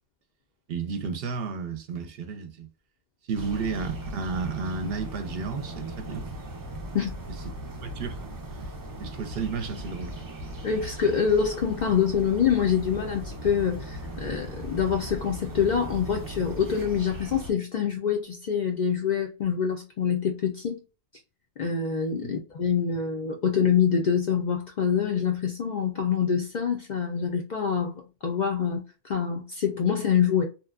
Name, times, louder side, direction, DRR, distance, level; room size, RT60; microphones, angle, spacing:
voice 1, 0.7-2.7 3.3-6.3 7.8-8.2 8.5-8.7 9.0-10.3 22.2-22.3, right 5 dB, 65° right, 0.7 m, -32 dB
sound 1, 3.3-17.5, right 1 dB, 35° right, 0.3 m, -38 dB
voice 2, 10.6-20.8 21.6-27.9 28.2-30.4, left 7 dB, 55° left, 0.5 m, -25 dB
2.9 x 2.1 x 2.3 m
omnidirectional pair, 1.1 m